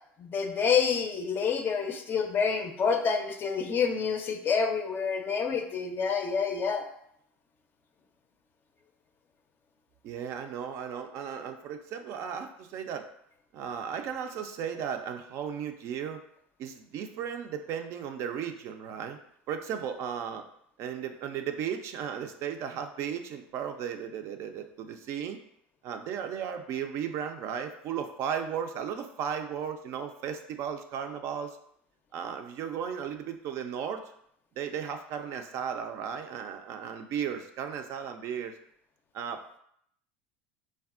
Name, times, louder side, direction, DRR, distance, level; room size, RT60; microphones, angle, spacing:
voice 1, 0.2-6.9, left 6 dB, 35° left, 5 dB, 0.4 m, -28 dB
voice 2, 10.0-13.1 13.5-16.2 16.6-19.2 19.5-20.4 20.8-25.4 25.8-31.6 32.1-34.1 34.6-38.5 39.1-39.6, right 8 dB, 55° right, 6 dB, 0.4 m, -35 dB
3.4 x 2.2 x 2.4 m, 0.69 s
hypercardioid pair, 85°, 6 cm